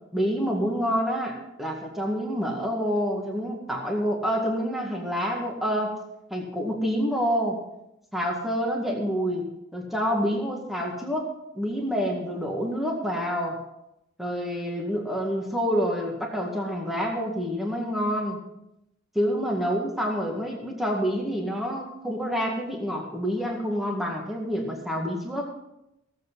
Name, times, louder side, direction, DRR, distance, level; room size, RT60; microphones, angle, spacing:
voice 1, 0.1-6.0 6.3-7.6 8.1-9.5 9.7-13.6 14.2-18.4 19.2-25.5, equal, ahead, 0 dB, 1.9 m, -27 dB
16.5 x 7.8 x 5.6 m, 0.86 s
head